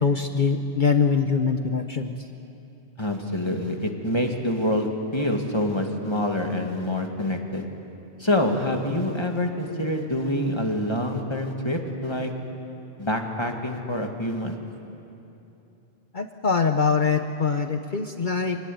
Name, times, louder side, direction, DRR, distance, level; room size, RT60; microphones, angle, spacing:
voice 1, 0.0-2.1 16.1-18.7, left 5 dB, 50° left, 6 dB, 1.0 m, -23 dB
voice 2, 3.0-7.6 8.2-12.3 13.0-14.6, left 1 dB, 25° left, 3 dB, 2.1 m, -26 dB
26.0 x 18.0 x 9.3 m, 2.9 s
omnidirectional pair, 1.1 m